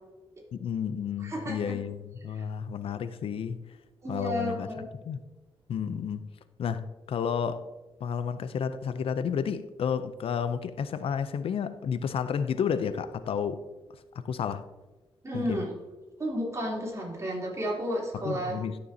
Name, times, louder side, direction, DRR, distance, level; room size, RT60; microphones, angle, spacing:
voice 1, 0.5-3.6 4.1-4.7 5.1-5.2 5.7-6.3 6.6-7.6 8.0-13.6 14.2-14.6 15.3-15.6 18.2-18.8, left 7 dB, 70° left, 0.5 m, -31 dB
voice 2, 1.2-1.8 2.3-2.5 4.0-4.8 15.2-15.7 16.2-18.6, equal, 30° right, 3.1 m, -32 dB
12.5 x 6.8 x 2.7 m
cardioid pair, 110°, 10 cm